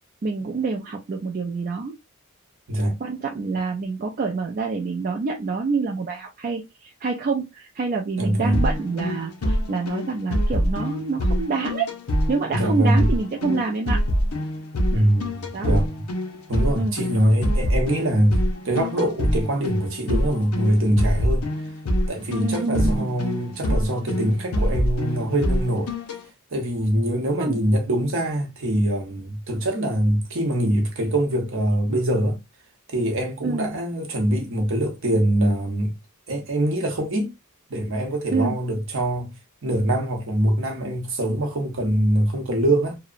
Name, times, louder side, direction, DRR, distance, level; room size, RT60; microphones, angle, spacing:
voice 1, 0.2-2.0 3.0-11.9 12.3-14.0 15.5-15.8 16.7-17.0 22.4-23.1 27.4-27.6 33.4-33.7 38.3-38.5, right 4 dB, 40° right, 0.3 m, -27 dB
voice 2, 8.2-8.6 12.5-13.1 14.9-16.0 16.5-21.5 22.1-25.9 26.5-32.4 32.9-36.0 36.3-37.3 37.7-39.4 39.6-43.0, right 1 dB, 60° right, 0.8 m, -23 dB
sound 1, 8.5-26.2, equal, 85° left, 0.6 m, -25 dB
2.8 x 2.1 x 2.4 m
head